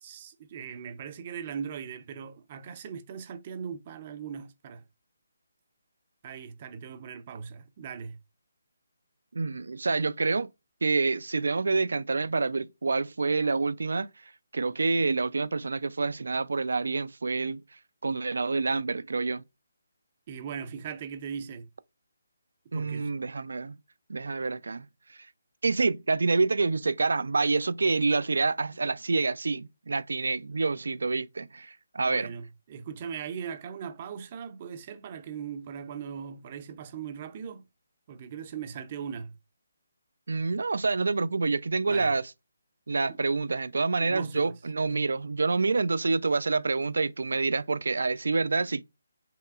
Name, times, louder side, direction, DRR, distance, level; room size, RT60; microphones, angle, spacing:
voice 1, 0.0-4.8 6.2-8.2 20.3-21.7 22.7-23.1 32.0-37.6 38.1-39.3 41.8-42.1 44.0-44.5, right 7 dB, 30° right, 0.5 m, -39 dB
voice 2, 9.3-10.5 10.8-17.6 18.0-19.4 22.7-23.8 24.1-25.3 25.6-32.3 40.3-42.3 42.9-48.8, right 3 dB, 80° right, 0.4 m, -27 dB
5.7 x 3.0 x 2.4 m
hypercardioid pair, 170°, 0 cm